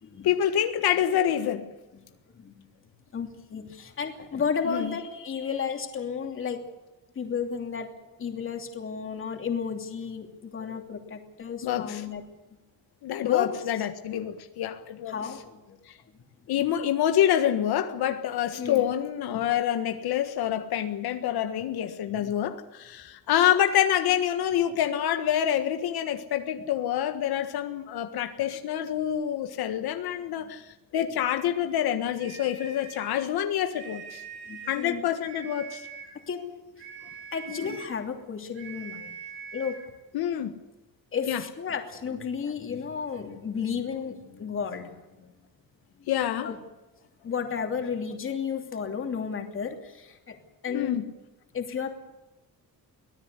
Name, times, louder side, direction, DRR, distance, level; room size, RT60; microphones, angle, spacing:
voice 1, 0.2-1.7 4.6-5.0 10.6-10.8 11.6-12.1 13.0-15.4 16.5-34.2 34.7-35.9 37.5-37.8 40.1-40.6 41.2-41.5 46.1-46.6 50.7-51.2, left 10 dB, 85° left, 1.6 m, -27 dB
voice 2, 2.4-2.7 3.1-6.6 7.1-7.9 8.2-12.2 13.2-13.5 15.1-15.8 16.5-16.6 18.6-18.9 19.3-19.4 34.5-35.0 36.3-36.4 37.3-39.1 39.5-39.8 41.1-45.3 46.4-46.6 47.2-50.4 50.6-51.0 51.5-51.9, left 6 dB, 35° left, 2.9 m, -33 dB
sound 1, 32.1-33.2 33.7-34.9 35.2-36.2 36.8-38.0 38.5-39.9, right 6 dB, 90° right, 7.5 m, -43 dB
24.0 x 17.5 x 8.3 m
cardioid pair, 180°, 37 cm